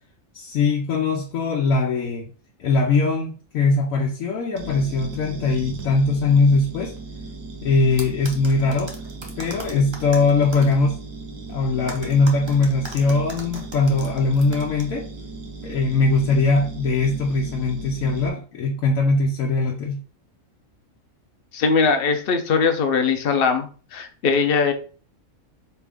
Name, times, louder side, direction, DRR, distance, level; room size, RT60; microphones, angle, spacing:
voice 1, 0.3-2.3 2.6-6.9 7.6-8.9 9.4-11.0 11.5-15.1 15.6-20.0, left 3 dB, 85° left, -1 dB, 1.0 m, -21 dB
sound 1, 4.6-18.3, right 3 dB, 75° right, 1.3 m, -37 dB
sound 2, 8.0-10.7 11.9-14.8, right 2 dB, 30° right, 0.5 m, -38 dB
voice 2, 21.5-24.7, left 5 dB, 55° left, 6 dB, 0.7 m, -20 dB
4.5 x 2.4 x 3.3 m, 0.38 s
omnidirectional pair, 1.4 m